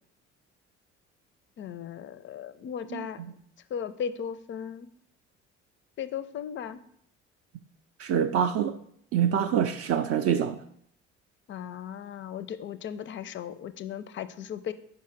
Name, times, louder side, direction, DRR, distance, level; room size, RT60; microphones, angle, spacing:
voice 1, 1.6-3.2 3.7-4.9 6.0-6.8 11.5-14.7, left 8 dB, 35° left, 0.4 m, -36 dB
voice 2, 2.9-3.3 8.0-8.8 9.1-10.6, right 8 dB, 45° right, 0.4 m, -26 dB
5.6 x 4.7 x 4.0 m
figure-of-eight pair, 50°, 35 cm